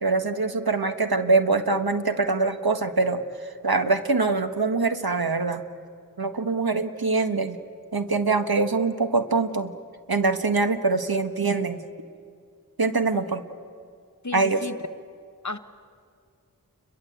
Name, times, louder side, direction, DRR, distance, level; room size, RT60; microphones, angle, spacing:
voice 1, 0.0-5.6 6.2-7.6 7.9-9.7 10.1-11.8 12.8-13.4 14.3-14.7, right 3 dB, 85° right, 8 dB, 1.6 m, -24 dB
voice 2, 14.2-14.7 15.4-15.6, left 3 dB, 55° left, 11 dB, 1.3 m, -32 dB
29.5 x 23.0 x 8.2 m, 2.3 s
wide cardioid pair, 40°, 35 cm